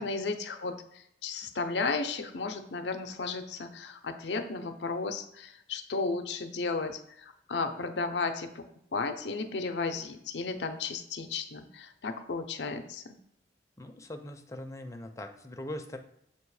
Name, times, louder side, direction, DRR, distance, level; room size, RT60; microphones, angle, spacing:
voice 1, 0.0-8.7 8.9-13.2, left 4 dB, 75° left, 8 dB, 0.6 m, -34 dB
voice 2, 13.8-16.0, left 1 dB, 20° left, 4 dB, 0.5 m, -41 dB
7.0 x 2.9 x 4.8 m, 0.74 s
head